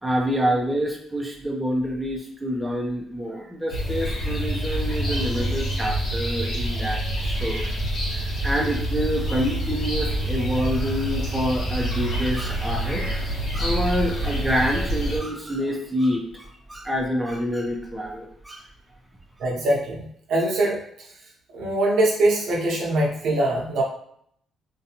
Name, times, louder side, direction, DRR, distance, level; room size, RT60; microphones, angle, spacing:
voice 1, 0.0-7.6 8.1-18.6, equal, 10° right, -1 dB, 0.6 m, -27 dB
sound 1, 3.7-15.2, right 1 dB, 70° left, 0.9 m, -27 dB
voice 2, 19.4-21.1 21.5-23.8, right 1 dB, 75° right, -2 dB, 0.8 m, -23 dB
2.6 x 2.2 x 2.8 m, 0.67 s
cardioid pair, 90°, 0 cm